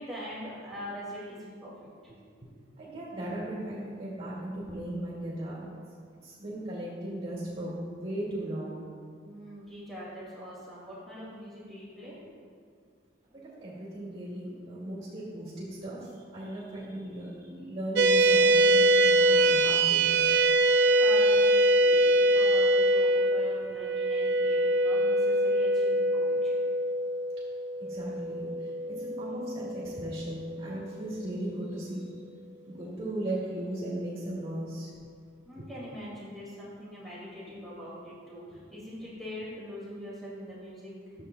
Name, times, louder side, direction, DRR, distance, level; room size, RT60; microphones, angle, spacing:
voice 1, 0.0-2.1 9.2-12.2 20.8-26.7 35.4-41.1, equal, ahead, -8 dB, 2.1 m, -43 dB
voice 2, 2.7-5.8 6.2-8.8 13.6-20.3 27.8-32.1 32.7-34.9 35.5-35.7 38.5-38.6, right 1 dB, 30° right, -6 dB, 2.0 m, -37 dB
sound 1, 18.0-30.6, right 1 dB, 65° right, 0.5 m, -24 dB
13.5 x 7.6 x 2.2 m, 2.1 s
head